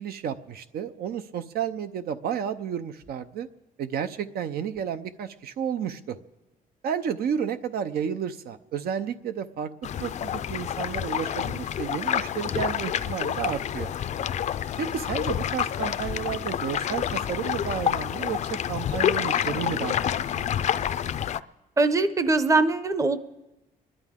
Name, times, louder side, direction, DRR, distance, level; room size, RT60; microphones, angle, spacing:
voice 1, 0.0-3.5 3.8-6.2 6.8-9.7 10.0-13.9 14.8-20.0 20.8-20.9, right 8 dB, 80° right, 10 dB, 0.7 m, -31 dB
sound 1, 9.8-21.4, left 9 dB, 50° left, 0.4 m, -28 dB
voice 2, 21.8-23.2, right 3 dB, 20° right, 12 dB, 0.7 m, -22 dB
28.0 x 11.0 x 3.7 m, 1.0 s
cardioid pair, 140°, 16 cm